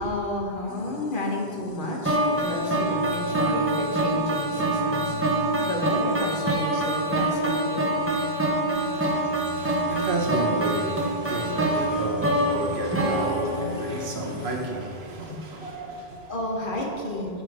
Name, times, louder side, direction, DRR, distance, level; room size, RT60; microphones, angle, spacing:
voice 1, 0.0-5.1 5.6-8.1 15.3-15.9 16.2-17.4, left 1 dB, 55° left, 1.6 m, -32 dB
sound 1, 0.7-14.7, left 5 dB, 75° left, 1.0 m, -39 dB
sound 2, 2.1-14.2, right 2 dB, 15° right, 1.0 m, -25 dB
voice 2, 8.7-16.3, right 2 dB, 85° right, 1.5 m, -32 dB
8.4 x 7.7 x 4.9 m
omnidirectional pair, 1.0 m